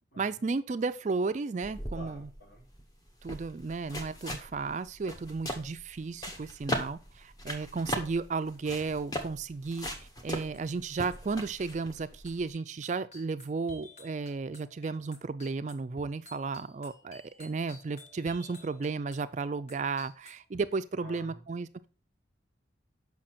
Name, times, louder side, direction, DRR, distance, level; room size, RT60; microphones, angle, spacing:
voice 1, 0.2-2.3 3.2-21.9, right 4 dB, 40° right, 13 dB, 0.3 m, -34 dB
sound 1, 1.6-12.5, equal, 20° left, 1.0 m, -39 dB
voice 2, 1.9-2.6 21.0-21.5, left 1 dB, 70° left, -2 dB, 4.0 m, -48 dB
sound 2, 10.0-10.3 10.5-20.6, left 2 dB, 35° left, 1.4 m, -54 dB
7.5 x 5.7 x 4.2 m, 0.36 s
head